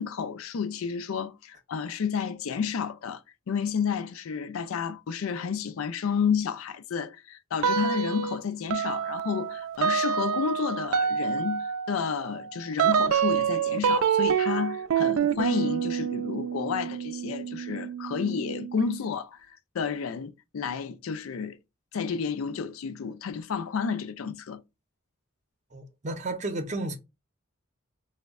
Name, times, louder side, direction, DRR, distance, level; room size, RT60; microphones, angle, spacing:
voice 1, 0.0-3.2 3.5-21.6 21.9-24.6, left 6 dB, 80° left, 0.4 m, -31 dB
sound 1, 7.6-8.4 8.7-19.0, right 7 dB, 80° right, 0.4 m, -27 dB
voice 2, 25.7-27.0, right 2 dB, 35° right, 0.6 m, -32 dB
3.1 x 2.1 x 3.5 m
head